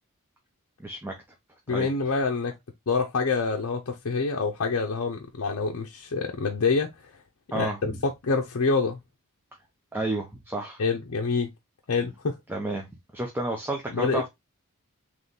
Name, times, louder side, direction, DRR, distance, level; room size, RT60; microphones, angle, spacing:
voice 1, 0.8-1.1 1.7-1.9 7.5-8.0 9.9-10.8 12.5-12.9 13.1-14.3, right 2 dB, 10° right, 0.7 m, -31 dB
voice 2, 1.7-2.5 2.9-6.9 7.5-9.0 10.8-11.5 11.9-12.4 13.9-14.3, left 4 dB, 65° left, 0.6 m, -26 dB
3.7 x 3.1 x 3.8 m
head